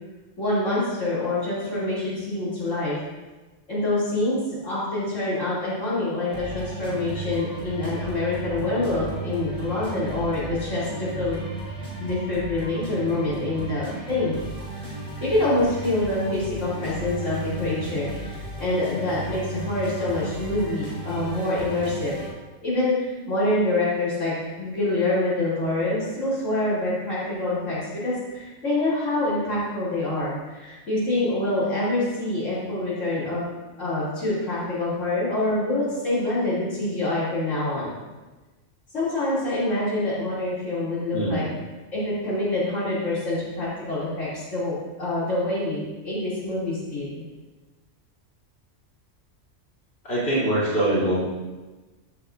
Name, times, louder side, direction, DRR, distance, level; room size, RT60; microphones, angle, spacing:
voice 1, 0.4-3.0 3.7-4.4 4.6-11.5 12.0-14.3 15.2-22.2 22.6-33.4 33.8-37.9 38.9-41.5 41.9-47.1, left 2 dB, 80° left, -10 dB, 3.4 m, -26 dB
sound 1, 6.3-22.3, right 2 dB, 40° right, 3.0 m, -35 dB
voice 2, 50.0-51.2, right 1 dB, 55° left, -9 dB, 3.5 m, -23 dB
14.0 x 8.3 x 2.6 m, 1.2 s
omnidirectional pair, 1.3 m